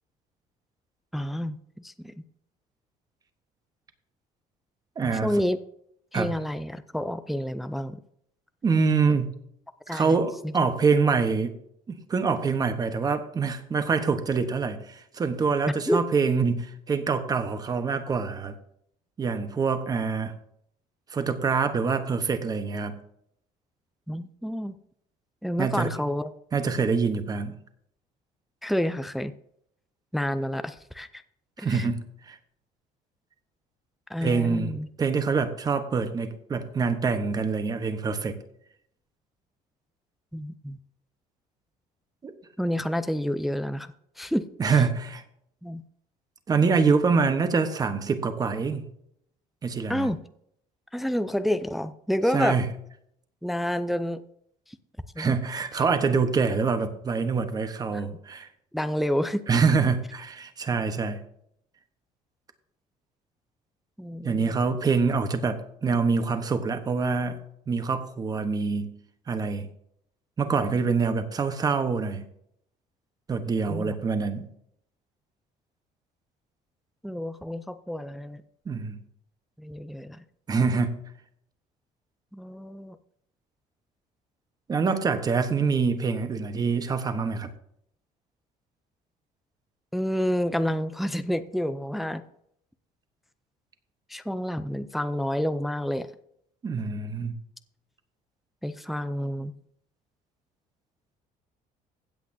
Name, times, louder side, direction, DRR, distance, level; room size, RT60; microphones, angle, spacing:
voice 1, 1.1-2.1 5.0-5.6 6.1-8.0 9.9-10.3 10.6-10.7 15.9-16.0 24.1-24.8 25.4-26.3 28.6-29.3 30.1-31.2 31.6-31.9 34.1-34.9 40.3-40.8 42.6-43.9 44.2-44.8 45.6-45.8 49.9-50.2 50.9-52.6 53.4-54.2 55.2-55.4 57.9-58.0 58.7-59.5 64.0-64.5 73.7-73.9 77.0-78.4 79.6-80.2 82.3-83.0 89.9-92.2 94.1-96.1 98.6-99.5, equal, ahead, 11 dB, 0.4 m, -29 dB
voice 2, 5.0-5.3 6.1-6.3 8.6-9.3 9.9-11.5 11.9-18.5 19.2-20.3 21.1-23.0 25.6-25.9 26.5-27.5 31.6-32.0 32.3-32.4 34.2-34.7 35.0-38.4 42.2-42.3 44.6-45.2 46.5-48.8 49.6-50.1 52.3-52.6 55.2-58.5 59.5-61.2 64.2-67.4 67.7-68.9 69.3-69.7 70.4-72.2 73.3-74.5 78.7-79.0 80.5-81.0 84.7-87.5 96.6-97.3, right 5 dB, 25° right, 9 dB, 1.0 m, -25 dB
16.0 x 8.3 x 2.7 m, 0.70 s
cardioid pair, 160°, 16 cm